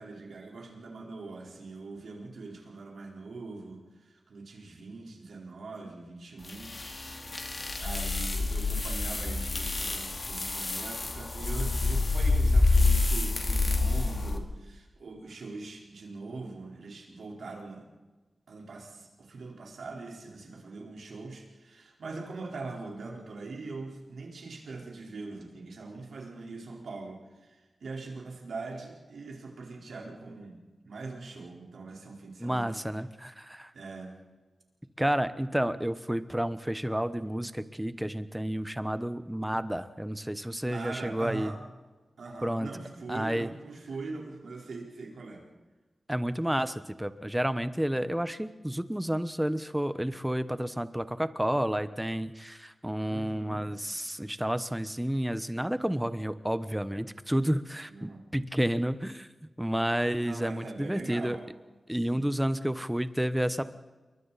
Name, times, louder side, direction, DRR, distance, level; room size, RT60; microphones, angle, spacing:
voice 1, 0.0-7.4 7.8-17.9 18.5-30.6 30.8-32.8 33.7-34.2 40.6-41.6 42.2-45.4 53.1-53.7 57.8-58.3 60.2-61.4 62.1-62.3, right 3 dB, 90° right, -1 dB, 4.3 m, -42 dB
sound 1, 6.5-14.4, left 3 dB, 45° left, 2.3 m, -27 dB
voice 2, 32.4-33.7 35.0-41.6 42.4-42.7 43.1-43.5 46.1-59.3 59.6-61.4 61.9-63.6, equal, 5° right, 12 dB, 1.1 m, -30 dB
29.0 x 23.0 x 4.2 m, 1.2 s
wide cardioid pair, 85°, 0 cm